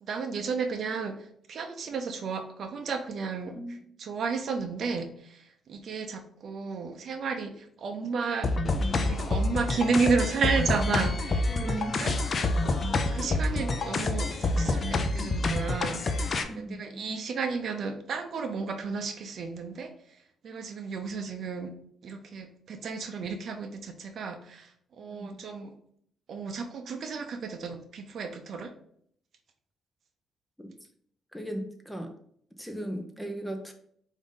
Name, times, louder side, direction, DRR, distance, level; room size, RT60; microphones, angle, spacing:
voice 1, 0.0-1.1 1.5-3.5 4.0-5.4 5.7-8.5 9.0-12.1 12.6-12.8 13.1-16.3 16.6-19.9 20.4-21.7 22.0-24.7 25.0-25.7 26.3-28.7, right 4 dB, 60° right, 7 dB, 0.6 m, -32 dB
voice 2, 3.5-3.8 11.5-12.1 16.4-17.2 25.1-25.4 30.6-30.7 31.3-32.1 32.6-33.7, right 1 dB, ahead, 4 dB, 0.7 m, -37 dB
sound 1, 8.4-16.4, left 2 dB, 45° left, 0.5 m, -27 dB
4.8 x 2.7 x 3.7 m, 0.65 s
cardioid pair, 90°, 0 cm